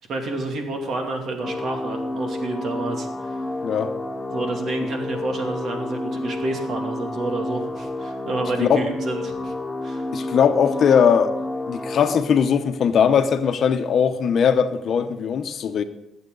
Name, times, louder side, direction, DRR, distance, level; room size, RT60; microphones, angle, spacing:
voice 1, 0.1-3.4 4.3-9.5 9.8-10.1, right 2 dB, 65° right, 2.6 m, -29 dB
sound 1, 1.4-12.2, left 2 dB, 10° left, 1.3 m, -30 dB
voice 2, 10.1-11.3 11.7-15.8, left 7 dB, 60° left, 0.9 m, -19 dB
19.5 x 7.9 x 4.0 m
cardioid pair, 90°, 0 cm